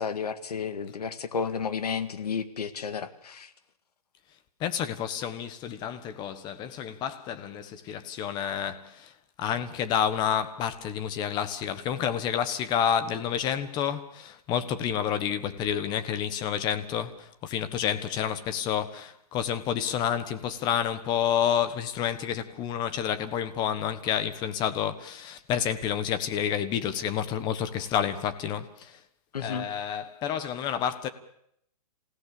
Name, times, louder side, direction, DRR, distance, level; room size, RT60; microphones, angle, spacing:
voice 1, 0.0-3.5 29.3-29.7, left 6 dB, 85° left, 1.9 m, -32 dB
voice 2, 4.6-9.1 9.4-29.0 29.4-31.1, left 9 dB, 20° left, 1.4 m, -29 dB
27.5 x 16.5 x 6.9 m
hypercardioid pair, 150°, 20 cm